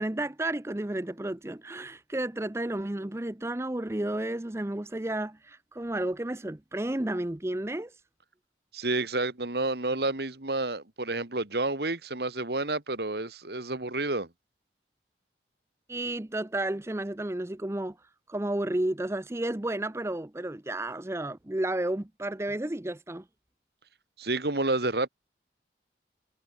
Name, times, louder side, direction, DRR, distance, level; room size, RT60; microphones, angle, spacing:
voice 1, 0.0-7.9 15.9-18.0 18.3-23.2, right 1 dB, 15° right, 0.6 m, -32 dB
voice 2, 8.7-14.3 24.2-25.1, right 2 dB, 65° right, 2.0 m, -30 dB
head